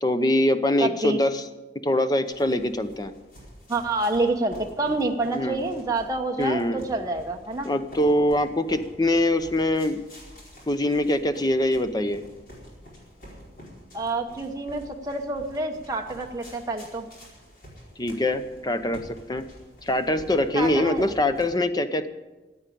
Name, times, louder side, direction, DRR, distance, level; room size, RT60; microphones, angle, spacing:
voice 1, 0.0-1.4 1.8-3.1 5.3-5.6 6.4-6.8 7.6-10.0 10.7-12.2 18.0-19.0 19.3-19.4 19.8-22.1, left 1 dB, 20° left, 10 dB, 0.7 m, -23 dB
voice 2, 0.8-1.2 3.7-7.7 13.9-17.1 20.5-21.1, right 2 dB, 20° right, 2 dB, 0.9 m, -27 dB
sound 1, 2.3-21.4, equal, 50° left, 4.6 m, -47 dB
15.0 x 8.8 x 8.5 m, 1.2 s
head